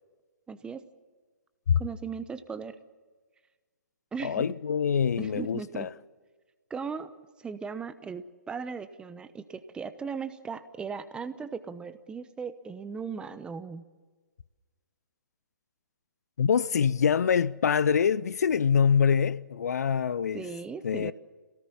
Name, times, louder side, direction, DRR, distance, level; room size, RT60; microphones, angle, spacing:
voice 1, 0.5-0.8 1.8-2.8 4.1-4.5 5.2-5.9 6.7-7.1 7.4-13.9 20.3-21.1, right 5 dB, 10° right, 1.0 m, -37 dB
voice 2, 4.2-5.9 16.4-20.4 20.8-21.1, left 7 dB, 60° left, 0.7 m, -25 dB
27.0 x 17.5 x 7.3 m
figure-of-eight pair, 130°, 10 cm